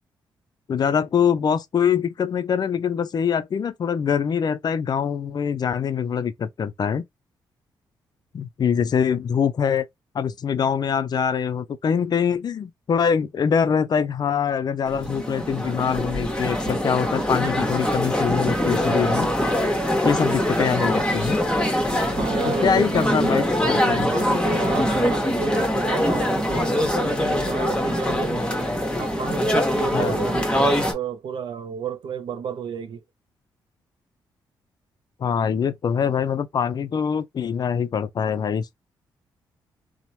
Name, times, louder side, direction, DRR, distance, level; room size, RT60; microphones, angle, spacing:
voice 1, 0.7-7.0 8.3-9.9 10.1-19.3 20.0-21.4 22.5-24.1 29.9-30.2 35.2-38.7, left 7 dB, 50° left, 0.4 m, -24 dB
sound 1, 14.9-30.9, equal, 10° left, 1.0 m, -23 dB
voice 2, 22.2-23.5 24.1-28.5 29.0-33.0, right 6 dB, 65° right, 0.4 m, -31 dB
2.9 x 2.1 x 2.6 m
supercardioid pair, 60°, 9 cm